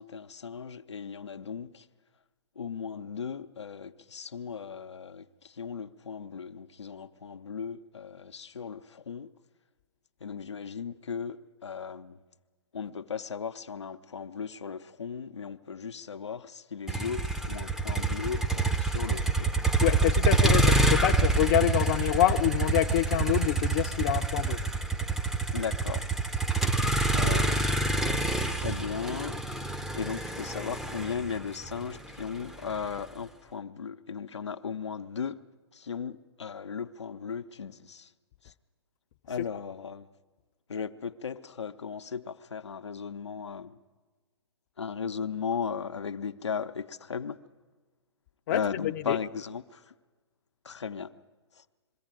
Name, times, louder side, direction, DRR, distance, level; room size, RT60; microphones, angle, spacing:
voice 1, 0.0-1.9 2.6-9.3 10.2-12.2 12.7-19.5 25.5-26.1 27.1-27.7 28.6-29.4 30.0-35.4 35.7-38.1 38.4-38.5 39.3-40.1 40.7-43.8 44.8-47.4 48.5-49.9 50.6-51.1 51.5-51.6, left 6 dB, 85° left, 0.7 m, -36 dB
Motor vehicle (road), 16.9-33.0, right 3 dB, 5° right, 0.6 m, -27 dB
voice 2, 19.8-24.6 48.5-49.2, left 13 dB, 45° left, 0.6 m, -26 dB
22.0 x 14.5 x 9.0 m
hypercardioid pair, 125°, 14 cm